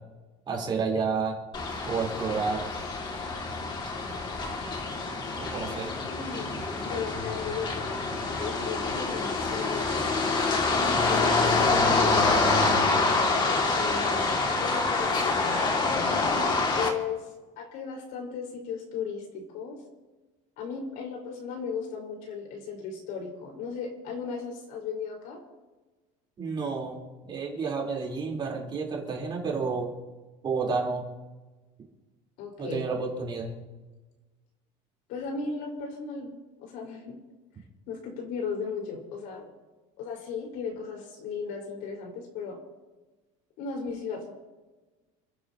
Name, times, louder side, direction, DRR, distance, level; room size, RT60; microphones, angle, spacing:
voice 1, 0.5-1.4 1.9-2.7 5.4-5.9 26.4-27.0 27.2-29.9 30.4-31.1 32.6-33.6, right 4 dB, 30° right, -1 dB, 4.0 m, -30 dB
sound 1, 1.5-16.9, left 3 dB, 30° left, 2.3 m, -26 dB
voice 2, 6.1-8.0 8.3-10.3 10.8-11.7 12.0-12.8 13.8-15.7 16.7-17.3 17.6-19.8 20.6-25.4 32.4-32.8 35.1-37.1 37.9-39.5 40.0-42.6 43.6-44.3, left 5 dB, 65° left, 0 dB, 4.9 m, -36 dB
30.0 x 11.0 x 3.0 m, 1.2 s
cardioid pair, 145°, 16 cm